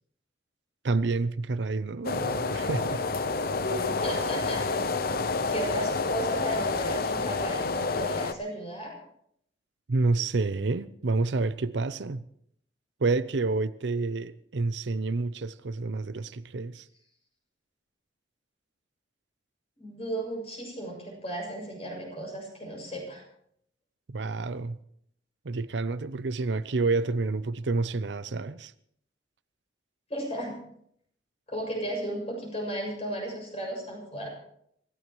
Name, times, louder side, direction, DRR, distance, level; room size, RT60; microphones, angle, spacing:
voice 1, 0.8-3.0 9.9-12.2 13.0-16.8 24.1-24.8 25.4-28.7, right 3 dB, 65° right, 0.6 m, -29 dB
sound 1, 2.0-8.3, left 3 dB, 50° left, 0.8 m, -29 dB
voice 2, 3.6-4.7 5.5-9.0 19.8-23.2 30.1-30.6 31.5-34.3, equal, 35° left, 6.7 m, -35 dB
25.5 x 15.5 x 3.1 m
head